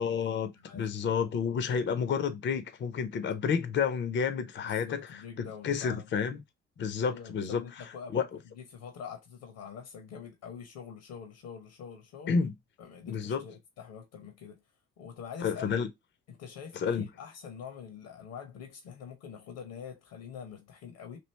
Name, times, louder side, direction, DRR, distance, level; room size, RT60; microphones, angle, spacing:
voice 1, 0.0-5.0 5.4-6.4 6.8-7.6 8.1-8.3 12.3-12.5 13.1-13.4 15.4-15.9 16.7-17.1, left 6 dB, 35° left, 0.6 m, -30 dB
voice 2, 0.5-0.9 4.6-6.1 7.1-12.3 12.8-14.6 15.0-15.7 16.3-21.2, left 7 dB, 65° left, 0.8 m, -45 dB
3.1 x 2.6 x 3.1 m
hypercardioid pair, 45°, 35 cm